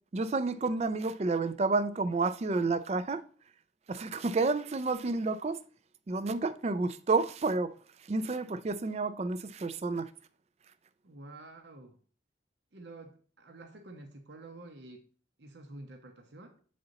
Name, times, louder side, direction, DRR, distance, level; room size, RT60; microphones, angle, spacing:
voice 1, 0.1-3.2 3.9-5.6 6.1-7.8 8.1-10.1, right 3 dB, 35° right, 0.4 m, -30 dB
voice 2, 11.0-12.0 12.7-15.0 15.4-16.6, right 2 dB, 65° right, 0.8 m, -49 dB
7.8 x 4.2 x 3.9 m
head